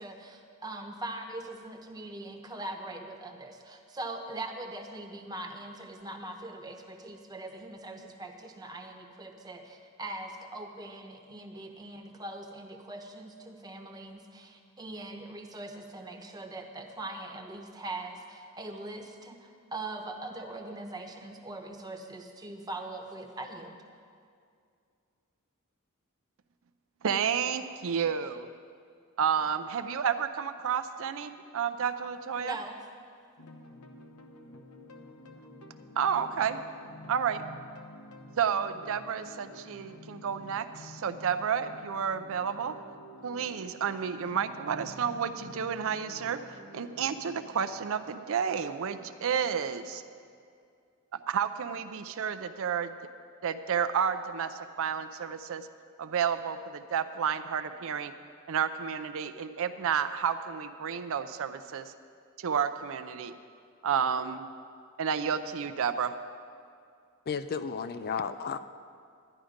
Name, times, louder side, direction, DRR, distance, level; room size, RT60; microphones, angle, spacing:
voice 1, 0.0-23.8 32.4-32.8, right 2 dB, 20° right, 3 dB, 0.9 m, -41 dB
voice 2, 27.0-28.5 29.2-32.6 36.0-36.6 37.1-37.4 38.4-42.7 43.2-46.4 46.7-50.0 51.3-53.0 53.4-55.7 56.0-58.1 58.5-61.9 62.4-63.3 63.8-64.5 65.0-66.1, right 7 dB, 65° right, 10 dB, 0.5 m, -31 dB
sound 1, 33.4-50.3, equal, 80° left, 1.0 m, -50 dB
voice 3, 67.3-68.6, left 6 dB, 45° left, 11 dB, 0.4 m, -33 dB
11.5 x 11.0 x 5.1 m, 2.3 s
head